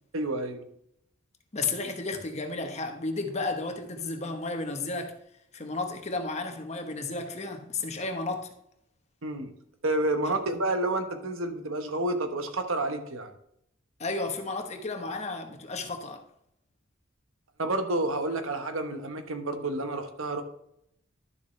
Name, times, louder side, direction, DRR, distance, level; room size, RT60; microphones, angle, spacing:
voice 1, 0.1-0.6 9.2-9.5 9.8-13.3 17.6-20.4, right 2 dB, 80° right, 1.2 m, -29 dB
voice 2, 1.5-5.1 5.5-8.5 14.0-16.2, left 3 dB, 35° left, 1.1 m, -33 dB
11.5 x 7.1 x 3.2 m
head